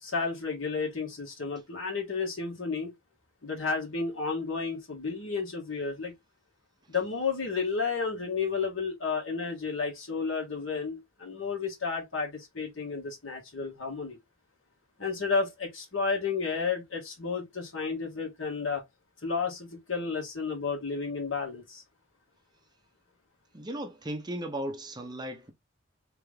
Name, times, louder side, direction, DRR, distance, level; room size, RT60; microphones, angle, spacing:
voice 1, 0.0-2.9 3.4-6.1 6.9-14.2 15.0-18.8 19.2-21.8, left 5 dB, 75° left, 1.6 m, -32 dB
voice 2, 23.5-25.5, right 1 dB, 20° right, 0.7 m, -36 dB
3.4 x 3.0 x 3.3 m
head